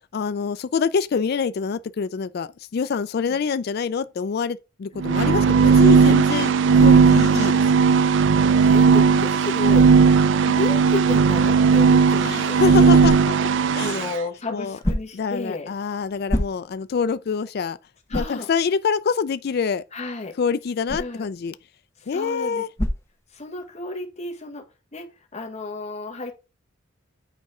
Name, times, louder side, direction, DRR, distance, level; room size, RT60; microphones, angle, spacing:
voice 1, 0.1-7.6 7.9-8.0 12.2-13.2 13.7-14.0 14.5-14.8 15.1-17.8 18.1-19.8 20.4-21.5 22.1-22.7, left 5 dB, 50° left, 0.4 m, -26 dB
sound 1, 5.0-14.1, right 5 dB, 65° right, 0.4 m, -16 dB
voice 2, 8.6-9.9 10.5-13.0 13.8-15.7 18.1-18.5 19.9-20.3 21.0-21.3 22.0-22.7 23.3-24.6 24.9-26.3, left 3 dB, 35° left, 1.4 m, -32 dB
sound 2, 12.2-23.9, left 1 dB, 15° left, 0.9 m, -33 dB
8.8 x 4.2 x 3.6 m
head